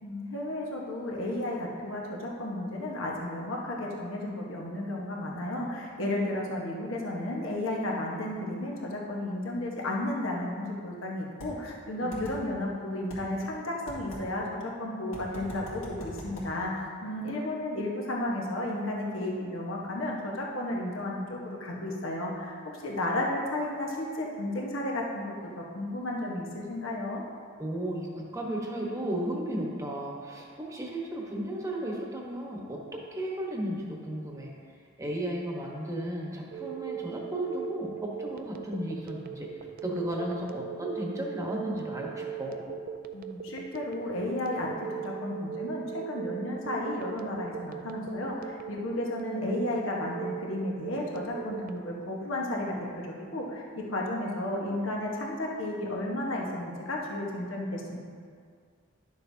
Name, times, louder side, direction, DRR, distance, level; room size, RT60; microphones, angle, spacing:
voice 1, 0.0-22.5 22.8-27.2 43.1-52.7 53.0-58.0, left 1 dB, 70° left, -2 dB, 1.2 m, -33 dB
sound 1, 11.4-11.5 12.1-12.4 13.1-13.2 13.9-14.2 15.1-16.5, left 1 dB, 90° left, 2.1 m, -42 dB
voice 2, 27.6-34.5 35.0-39.5 39.8-42.6, right 1 dB, 15° right, -2 dB, 1.1 m, -34 dB
Telephone, 36.5-51.8, right 9 dB, 45° right, 0.4 m, -39 dB
11.0 x 6.7 x 2.7 m, 2.1 s
head